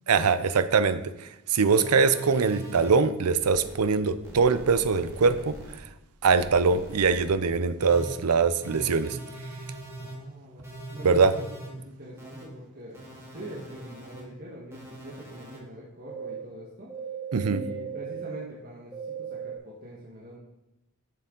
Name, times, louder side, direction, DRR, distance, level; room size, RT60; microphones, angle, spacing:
voice 1, 0.1-5.5 6.2-9.2 11.0-11.3 17.3-17.6, right 5 dB, 90° right, 12 dB, 0.6 m, -23 dB
sound 1, 1.7-2.9 3.4-3.7 4.2-5.8 6.2-7.3 7.8-8.1 8.6-10.1 10.6-11.7 12.2-12.4 12.9-14.2 14.7-15.6 16.1-16.4 16.9-18.4 18.9-19.6, right 4 dB, 10° right, 2.1 m, -40 dB
voice 2, 10.0-13.0 13.3-16.9 17.4-20.4, equal, 45° right, -5 dB, 1.5 m, -43 dB
10.5 x 6.8 x 3.8 m, 0.92 s
head